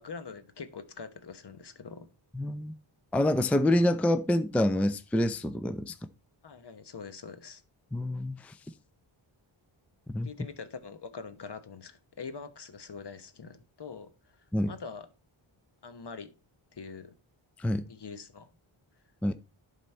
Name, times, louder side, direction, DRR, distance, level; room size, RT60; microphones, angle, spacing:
voice 1, 0.0-2.1 6.4-7.6 10.2-15.1 15.8-16.3 16.7-17.1 17.9-18.5, left 5 dB, 55° left, 1.0 m, -44 dB
voice 2, 2.3-2.7 3.1-6.0 7.9-8.6 10.1-10.3 14.5-14.7 17.6-17.8 19.2-19.3, left 1 dB, 5° left, 0.4 m, -27 dB
11.0 x 4.1 x 4.2 m
wide cardioid pair, 80°, 49 cm